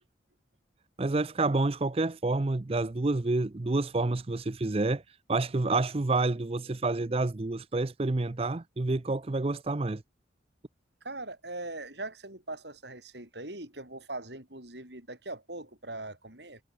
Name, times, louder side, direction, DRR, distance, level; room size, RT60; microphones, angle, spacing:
voice 1, 1.0-5.0 5.3-10.0, right 2 dB, 30° right, 0.6 m, -28 dB
voice 2, 11.0-16.6, right 2 dB, 65° right, 7.3 m, -41 dB
head